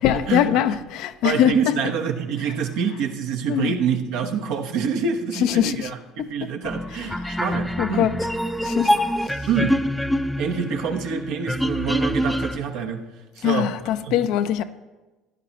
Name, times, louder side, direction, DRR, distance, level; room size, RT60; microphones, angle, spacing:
voice 1, 0.0-1.8 3.5-3.7 5.4-5.9 6.2-6.3 7.2-7.4 7.8-8.2 8.6-9.0 13.4-14.6, left 11 dB, 65° left, 0.5 m, -22 dB
voice 2, 1.2-8.1 9.5-9.8 10.4-13.0 13.4-13.7 14.0-14.1, right 6 dB, 65° right, 1.1 m, -26 dB
sound 1, 6.6-12.6, equal, ahead, 0.6 m, -25 dB
16.0 x 10.5 x 2.9 m
hypercardioid pair, 60°, 0 cm